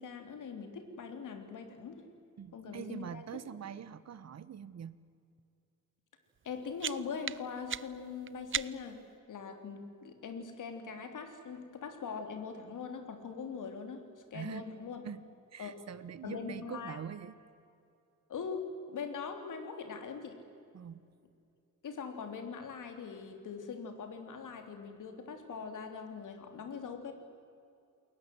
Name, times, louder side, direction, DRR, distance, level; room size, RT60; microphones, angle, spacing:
voice 1, 0.0-2.0 2.5-3.2 6.4-9.0 9.3-15.0 15.6-15.9 16.2-17.0 18.3-20.4 21.8-27.1, left 5 dB, 80° left, 6 dB, 3.5 m, -42 dB
voice 2, 2.4-5.0 14.3-14.6 15.0-15.3 15.5-17.3 20.7-21.0, right 8 dB, 55° right, 15 dB, 1.2 m, -43 dB
sound 1, 6.4-9.1, right 8 dB, 40° right, 0.6 m, -40 dB
29.0 x 21.5 x 8.0 m, 2.5 s
wide cardioid pair, 130°, 31 cm